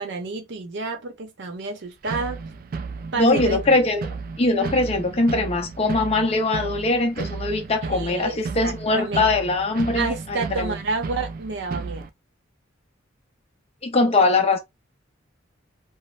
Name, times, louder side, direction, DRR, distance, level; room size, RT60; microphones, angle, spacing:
voice 1, 0.0-2.4 3.1-3.6 7.8-9.3 9.9-12.1, right 3 dB, 60° right, 0.7 m, -30 dB
sound 1, 2.0-12.1, right 4 dB, 45° right, 0.3 m, -33 dB
voice 2, 3.2-4.1 4.4-10.7 13.8-14.6, left 2 dB, 30° left, 0.7 m, -21 dB
3.2 x 2.0 x 2.5 m
head